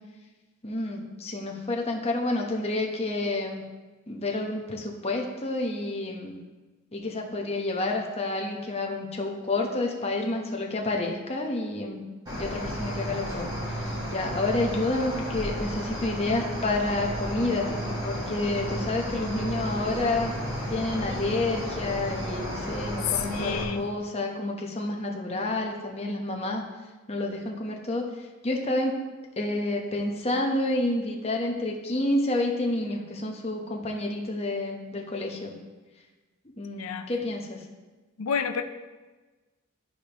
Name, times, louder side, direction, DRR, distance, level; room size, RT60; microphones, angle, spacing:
voice 1, 0.6-3.6 4.1-6.4 6.9-12.0 12.3-13.5 14.1-17.7 18.0-20.4 20.7-26.6 27.1-28.1 28.4-29.0 29.4-35.6 36.6-37.6, left 2 dB, 30° left, 0 dB, 1.0 m, -29 dB
Cricket, 12.3-23.6, equal, 20° right, 2.5 m, -33 dB
voice 2, 23.3-23.9 36.8-37.1 38.2-38.6, left 6 dB, 80° left, 9 dB, 0.5 m, -30 dB
13.0 x 4.9 x 3.0 m, 1.2 s
head